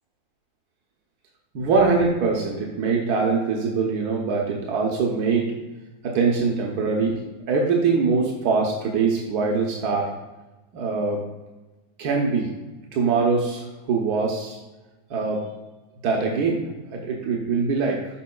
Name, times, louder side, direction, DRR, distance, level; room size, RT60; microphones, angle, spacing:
voice 1, 1.5-5.5 6.0-7.2 7.5-10.1 10.7-11.2 12.0-12.5 12.9-14.6 15.1-15.4 16.0-16.6 16.9-18.0, right 4 dB, 80° right, -1 dB, 1.4 m, -23 dB
12.0 x 4.6 x 2.3 m, 1.1 s
omnidirectional pair, 1.6 m